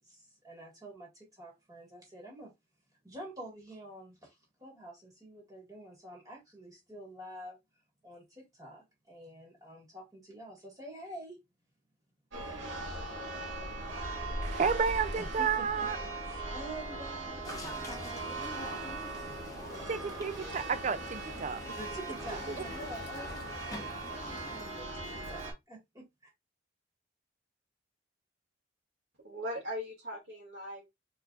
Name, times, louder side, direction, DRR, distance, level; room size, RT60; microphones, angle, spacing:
voice 1, 0.0-2.5 3.0-7.6 8.0-11.4 13.8-13.9 15.2-15.7 16.2-18.7 19.1-20.1 21.7-26.3, right 1 dB, 20° right, 1.8 m, -48 dB
Church bell, 12.3-25.5, right 2 dB, 90° right, 1.9 m, -39 dB
voice 2, 14.4-16.0 19.9-21.6 22.5-22.6, right 6 dB, 40° right, 0.4 m, -31 dB
sound 1, 17.4-24.6, left 2 dB, 20° left, 1.0 m, -47 dB
voice 3, 29.2-30.9, equal, 70° right, 2.2 m, -39 dB
4.3 x 3.8 x 2.5 m
head